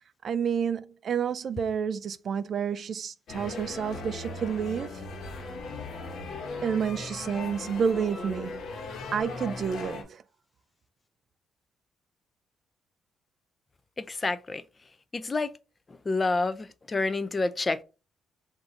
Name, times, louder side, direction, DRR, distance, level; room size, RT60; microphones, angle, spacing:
voice 1, 0.2-4.9 6.6-8.7 9.1-10.2, right 7 dB, 55° right, 0.3 m, -29 dB
sound 1, 3.3-10.0, left 3 dB, 65° left, 1.2 m, -38 dB
voice 2, 14.0-14.6 15.1-15.5 16.1-17.8, left 3 dB, 25° left, 0.4 m, -28 dB
3.8 x 2.6 x 4.4 m
cardioid pair, 90°, 0 cm